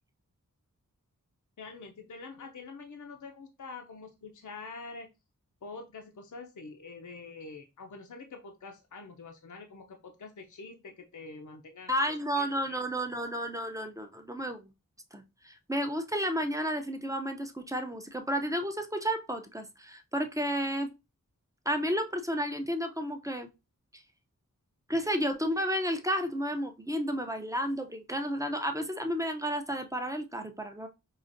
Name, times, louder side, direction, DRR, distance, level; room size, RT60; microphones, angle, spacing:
voice 1, 1.6-5.1 5.6-12.0 12.4-12.9, left 4 dB, 60° left, 0.6 m, -46 dB
voice 2, 11.9-14.7 15.1-20.9 21.7-23.5 23.9-24.0 24.9-30.9, equal, 10° right, 0.5 m, -32 dB
4.8 x 2.5 x 2.5 m
wide cardioid pair, 45°, 34 cm